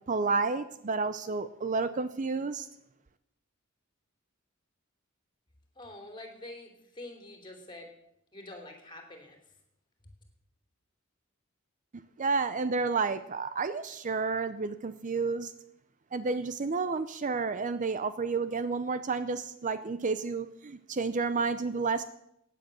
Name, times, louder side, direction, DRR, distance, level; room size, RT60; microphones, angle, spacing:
voice 1, 0.1-2.7 12.2-15.5 16.1-22.0, right 4 dB, 40° right, 12 dB, 0.6 m, -30 dB
voice 2, 5.7-7.9 8.3-9.5, left 1 dB, 25° left, 4 dB, 3.2 m, -46 dB
15.5 x 9.3 x 6.8 m, 0.79 s
head